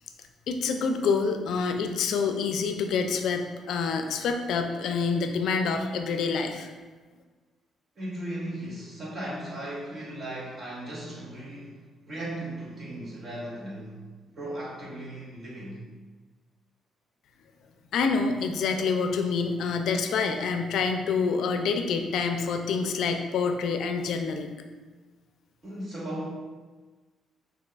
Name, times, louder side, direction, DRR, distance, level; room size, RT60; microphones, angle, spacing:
voice 1, 0.5-6.7 17.9-24.5, left 5 dB, 75° left, 5 dB, 0.4 m, -27 dB
voice 2, 8.0-14.0 14.3-15.9 25.6-26.3, right 1 dB, 45° right, -6 dB, 1.5 m, -37 dB
6.2 x 2.7 x 2.4 m, 1.4 s
cardioid pair, 90°, 0 cm